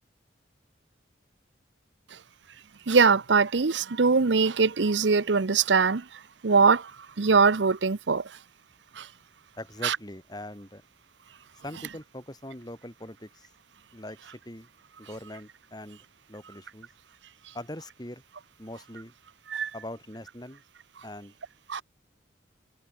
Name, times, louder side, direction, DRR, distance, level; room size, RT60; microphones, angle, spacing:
voice 1, 2.9-6.0 6.4-6.9 7.2-8.2 9.0-9.1 9.8-10.0 19.5-19.7 21.7-21.8, right 5 dB, 75° right, 0.8 m, -22 dB
voice 2, 9.6-10.8 11.6-13.5 13.9-14.7 15.0-16.9 17.5-18.2 18.6-19.1 19.7-20.6 21.0-21.3, left 1 dB, 20° left, 5.7 m, -42 dB
head